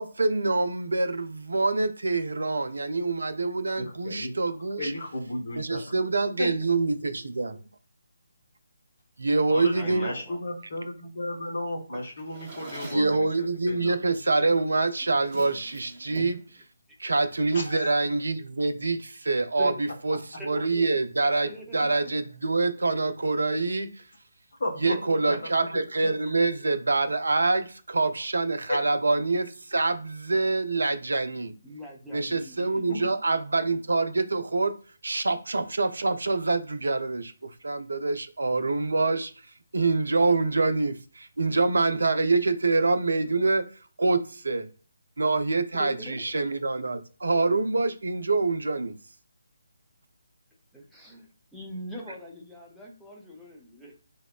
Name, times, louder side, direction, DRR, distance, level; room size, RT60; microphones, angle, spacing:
voice 1, 0.0-4.9 5.6-7.6 9.2-10.1 12.9-16.4 17.0-19.7 20.0-20.2 20.4-21.5 21.7-24.0 24.8-31.5 32.1-34.7 35.0-39.3 39.7-43.6 44.0-44.7 45.2-48.9, right 3 dB, 60° right, 0.4 m, -25 dB
voice 2, 3.8-4.3 4.8-5.8 6.4-6.5 9.5-14.0 17.5-17.9 24.6-25.0 25.2-25.5 28.7-28.8 32.9-33.1, left 1 dB, 50° left, 0.9 m, -34 dB
voice 3, 9.7-10.4 19.6-19.8 20.4-21.0 21.5-22.2 24.8-25.5 31.6-32.9 45.7-46.2 46.5-46.6 50.7-54.0, equal, ahead, 0.5 m, -42 dB
Drawer open or close, 11.9-13.2 14.4-14.6 15.0-16.5, right 2 dB, 25° right, 0.8 m, -44 dB
2.7 x 2.0 x 2.2 m
figure-of-eight pair, 145°, 0 cm